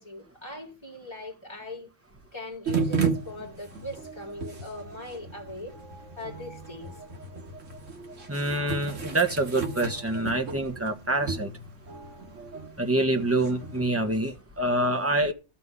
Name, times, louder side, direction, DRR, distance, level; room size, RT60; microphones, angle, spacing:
voice 1, 0.0-1.9 2.3-5.8 6.2-6.9, left 1 dB, 20° left, 3.1 m, -40 dB
sound 1, 2.7-14.0, right 4 dB, 90° right, 2.0 m, -34 dB
voice 2, 8.3-11.5 12.8-15.3, right 2 dB, 10° right, 1.4 m, -26 dB
13.0 x 5.7 x 8.3 m
omnidirectional pair, 1.3 m